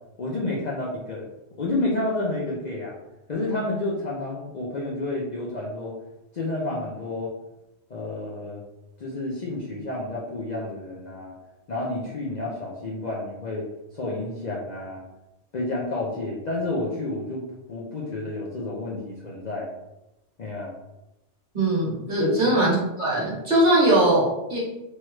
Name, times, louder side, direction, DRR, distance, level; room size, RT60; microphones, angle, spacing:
voice 1, 0.2-1.3 1.6-3.0 3.3-5.9 6.3-7.3 7.9-8.6 9.0-11.3 11.7-13.7 13.9-15.0 15.5-19.7 20.4-20.7 22.2-22.5, left 2 dB, 50° left, -5 dB, 0.6 m, -30 dB
voice 2, 21.5-24.6, right 1 dB, 45° right, -6 dB, 1.2 m, -21 dB
3.1 x 2.3 x 3.0 m, 0.92 s
omnidirectional pair, 1.2 m